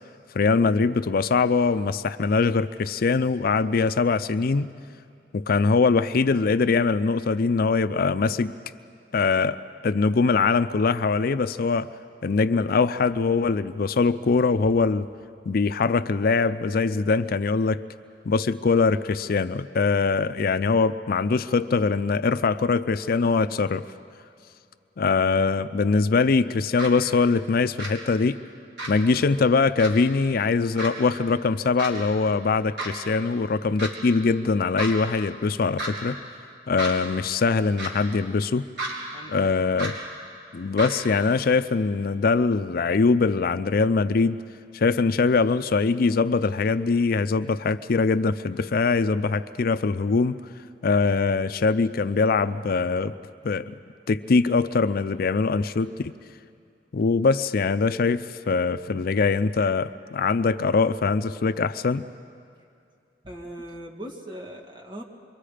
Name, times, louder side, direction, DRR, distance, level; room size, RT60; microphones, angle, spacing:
voice 1, 0.3-4.7 5.3-8.5 9.1-11.9 12.2-15.1 15.5-17.8 18.3-23.9 25.0-28.4 28.9-36.2 36.7-38.6 39.3-40.0 40.5-44.4 44.7-50.4 50.8-53.1 53.4-53.7 54.1-56.1 56.9-62.1, left 4 dB, 55° left, 12 dB, 0.5 m, -22 dB
sound 1, 26.8-26.9 27.8-27.9 28.8-28.9 29.8-29.9 30.8-30.9 31.8-31.9 32.8-32.9 33.8-33.9 34.8-34.9 35.8-35.9 36.8-36.9 37.8-37.9 38.8-38.9 39.8-39.9 40.8-40.9, right 2 dB, 70° right, 4.8 m, -31 dB
voice 2, 63.2-65.0, right 1 dB, 25° right, 1 dB, 2.2 m, -39 dB
27.0 x 23.5 x 5.0 m, 2.5 s
head